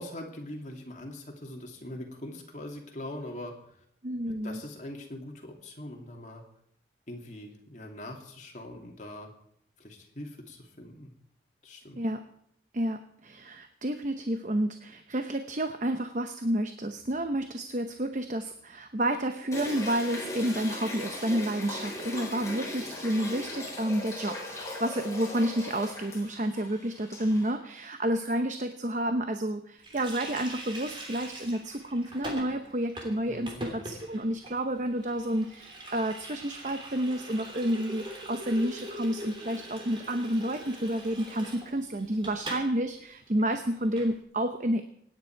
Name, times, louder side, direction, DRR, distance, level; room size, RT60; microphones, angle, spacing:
voice 1, 0.0-3.8 4.3-6.4 7.1-9.3 9.8-11.1 11.6-12.0 33.3-33.6, left 1 dB, 45° left, 1 dB, 2.6 m, -42 dB
voice 2, 4.0-4.6 12.0-12.3 12.7-44.8, right 1 dB, 45° right, 8 dB, 0.8 m, -30 dB
sound 1, 19.5-27.5, left 2 dB, 15° left, 4.1 m, -39 dB
Water tap faucet, 29.8-42.7 43.0-43.1 43.4-44.1, right 1 dB, 30° right, 3.3 m, -43 dB
25.0 x 9.9 x 4.6 m, 0.69 s
head